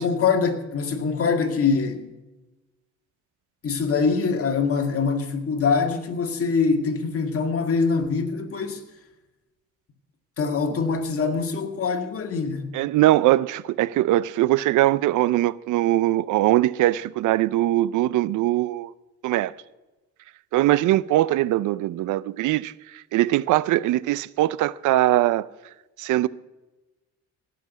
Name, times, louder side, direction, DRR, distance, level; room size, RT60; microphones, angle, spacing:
voice 1, 0.0-2.1 3.6-8.8 10.4-12.7, left 5 dB, 50° left, 2.0 m, -24 dB
voice 2, 12.7-18.9 19.2-19.5 20.5-22.7 23.1-25.5 26.0-26.3, right 15 dB, 80° right, 0.5 m, -21 dB
17.0 x 6.0 x 9.3 m
cardioid pair, 90°, 30 cm